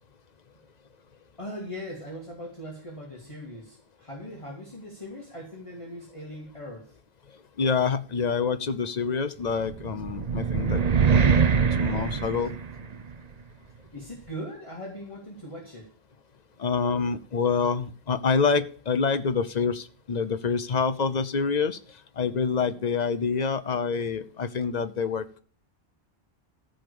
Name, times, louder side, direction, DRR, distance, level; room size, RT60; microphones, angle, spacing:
voice 1, 1.4-6.9 13.9-15.9, equal, 30° left, -2 dB, 2.2 m, -40 dB
voice 2, 7.6-10.8 11.3-11.4 11.8-12.6 16.6-21.8 22.2-25.4, left 5 dB, 45° left, 12 dB, 0.8 m, -26 dB
sound 1, 9.6-13.1, right 6 dB, 45° right, 0.8 m, -23 dB
14.0 x 5.1 x 6.9 m, 0.43 s
omnidirectional pair, 1.1 m